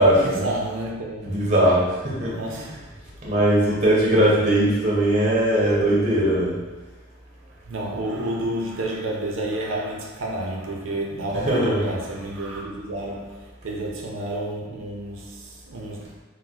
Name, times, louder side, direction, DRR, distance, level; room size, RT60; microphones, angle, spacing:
voice 1, 0.2-1.3 2.3-2.7 7.7-16.2, right 1 dB, 70° right, -1 dB, 0.5 m, -30 dB
voice 2, 1.2-2.7 3.2-6.6 11.3-11.8, right 1 dB, 35° right, -5 dB, 0.7 m, -20 dB
4.0 x 2.1 x 2.3 m, 1.2 s
head